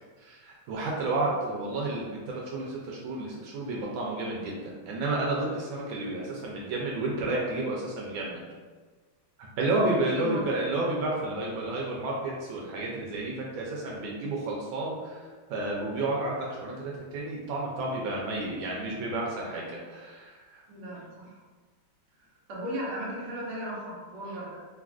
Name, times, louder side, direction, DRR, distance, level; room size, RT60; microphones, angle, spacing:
voice 1, 0.2-8.4 9.6-15.2 15.5-20.6, right 2 dB, 75° right, -3 dB, 1.2 m, -31 dB
voice 2, 9.7-10.6 11.2-11.3 20.7-21.4 22.2-24.6, equal, 55° right, -6 dB, 0.9 m, -36 dB
3.4 x 2.4 x 2.3 m, 1.4 s
omnidirectional pair, 2.3 m